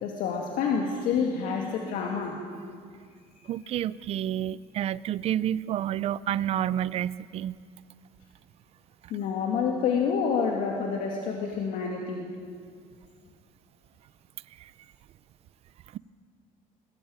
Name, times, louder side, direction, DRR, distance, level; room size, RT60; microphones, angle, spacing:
voice 1, 0.0-2.4 9.1-12.3, left 6 dB, 75° left, 1 dB, 2.6 m, -28 dB
voice 2, 3.5-7.6 14.6-14.7 15.9-16.0, right 11 dB, 45° right, 18 dB, 0.6 m, -29 dB
22.0 x 21.0 x 9.0 m, 2.1 s
cardioid pair, 165°, 14 cm